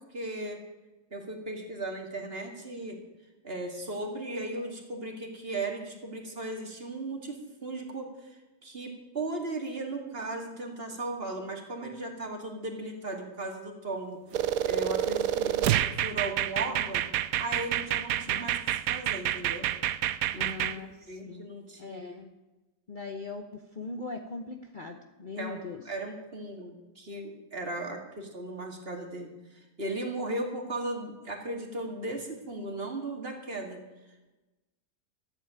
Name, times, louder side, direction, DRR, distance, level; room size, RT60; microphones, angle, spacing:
voice 1, 0.1-0.6 1.1-3.0 3.4-14.2 14.6-17.0 17.4-19.7 20.3-22.2 25.4-33.8, right 2 dB, 35° right, 2 dB, 2.3 m, -37 dB
sound 1, 14.3-20.7, right 12 dB, 70° right, 1.0 m, -28 dB
voice 2, 15.4-15.7 18.2-18.5 20.3-21.5 21.8-22.3 22.9-25.8, left 4 dB, 35° left, 4 dB, 0.9 m, -40 dB
14.0 x 8.3 x 9.0 m, 1.1 s
omnidirectional pair, 1.7 m